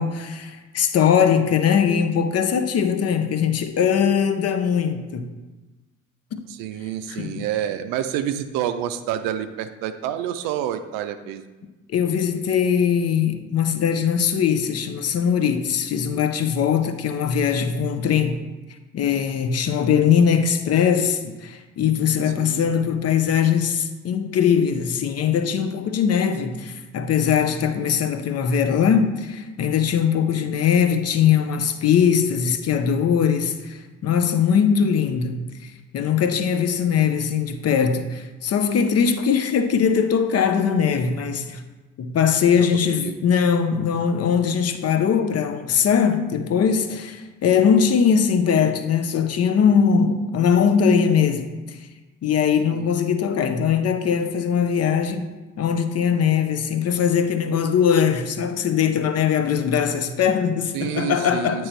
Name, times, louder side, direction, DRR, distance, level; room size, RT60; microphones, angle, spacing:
voice 1, 0.0-5.3 6.3-6.4 7.1-7.5 11.9-18.4 18.9-41.6 42.0-51.8 52.2-55.3 55.6-61.7, left 7 dB, 40° left, 0.6 m, -21 dB
voice 2, 6.6-11.4 22.4-22.7 30.4-30.5 42.6-43.2 52.7-52.9 60.7-61.7, right 10 dB, 60° right, 0.5 m, -28 dB
8.6 x 3.0 x 4.5 m
figure-of-eight pair, 45°, 40 cm